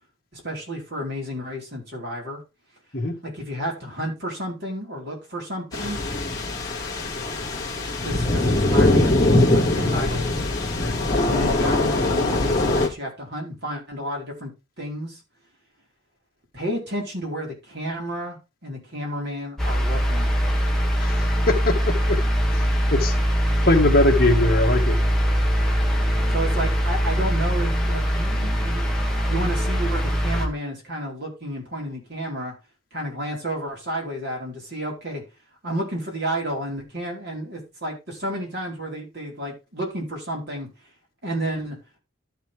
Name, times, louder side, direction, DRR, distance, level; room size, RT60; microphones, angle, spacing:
voice 1, 0.3-2.4 3.2-6.0 8.0-10.3 11.2-14.5 14.8-15.2 16.5-18.4 18.6-20.4 26.3-28.9 29.3-32.5 32.9-35.2 35.6-40.7 41.2-41.8, equal, 50° right, 4.4 m, -31 dB
sound 1, 5.7-12.9, left 2 dB, 20° left, 2.4 m, -22 dB
sound 2, 19.6-30.5, equal, ahead, 1.7 m, -22 dB
voice 2, 21.0-22.2 22.5-23.1 23.6-25.0, left 2 dB, 45° left, 2.1 m, -22 dB
12.5 x 5.9 x 3.6 m
head